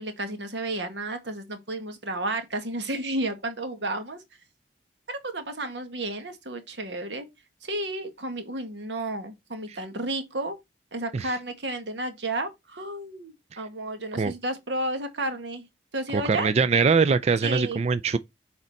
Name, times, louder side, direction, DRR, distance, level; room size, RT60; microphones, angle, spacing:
voice 1, 0.0-4.2 5.1-7.3 7.6-10.6 10.9-15.6 15.9-16.5 17.4-17.8, right 1 dB, 90° right, 1.8 m, -32 dB
voice 2, 16.1-18.2, right 5 dB, 40° right, 0.4 m, -23 dB
6.5 x 4.3 x 4.2 m
head